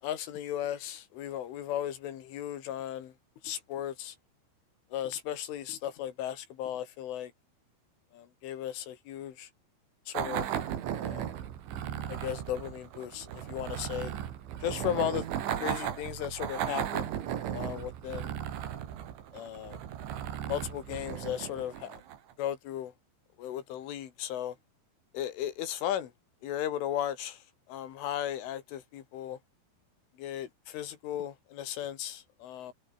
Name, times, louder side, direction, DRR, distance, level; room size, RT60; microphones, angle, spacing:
voice 1, 0.0-3.1 3.4-4.2 4.9-7.3 8.1-9.5 10.1-10.5 11.0-11.3 12.1-14.1 14.6-15.3 15.6-17.1 17.5-18.3 19.3-19.8 20.5-22.0 22.4-22.9 23.4-24.6 25.1-26.1 26.4-29.4 30.2-32.7, left 11 dB, 80° left, 4.9 m, -36 dB
sound 1, 10.1-22.3, right 10 dB, 70° right, 4.9 m, -36 dB
omnidirectional pair, 5.5 m